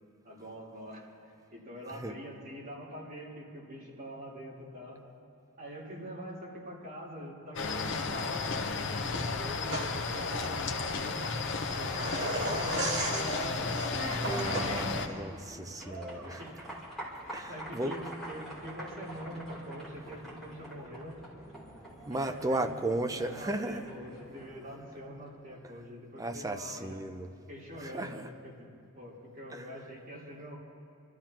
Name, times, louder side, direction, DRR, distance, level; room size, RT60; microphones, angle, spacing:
voice 1, 0.2-1.1 1.5-5.0 5.6-11.3 11.8-13.5 16.2-16.6 17.2-21.2 22.1-27.0 27.5-28.7 29.0-30.6, equal, 45° right, -7 dB, 3.5 m, -44 dB
sound 1, 7.6-15.1, left 4 dB, 55° left, 0.8 m, -33 dB
sound 2, 9.7-15.2, right 1 dB, 85° right, 2.2 m, -37 dB
sound 3, 12.6-25.3, right 1 dB, ahead, 3.1 m, -43 dB
voice 2, 14.2-16.4 17.3-18.0 22.1-23.8 26.2-27.3 27.8-28.3 29.5-29.7, right 1 dB, 15° right, 6 dB, 0.5 m, -35 dB
28.0 x 13.5 x 2.9 m, 2.4 s
head